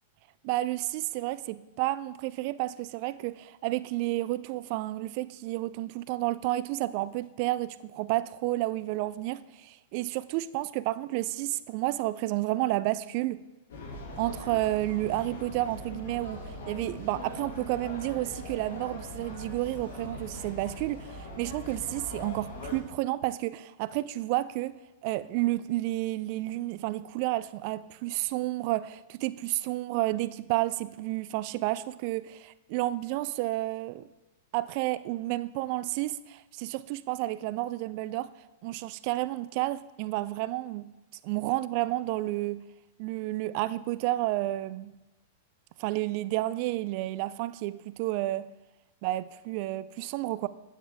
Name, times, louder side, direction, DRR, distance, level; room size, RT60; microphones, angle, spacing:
voice 1, 0.4-13.4 14.2-16.4 16.7-24.8 25.0-34.1 34.5-38.3 38.6-40.9 41.2-42.6 43.0-44.9 45.8-48.5 49.0-50.5, right 17 dB, 50° right, 0.4 m, -31 dB
sound 1, 13.7-22.8, left 2 dB, 70° left, 2.1 m, -41 dB
9.1 x 7.3 x 3.5 m
hypercardioid pair, 115°, 0 cm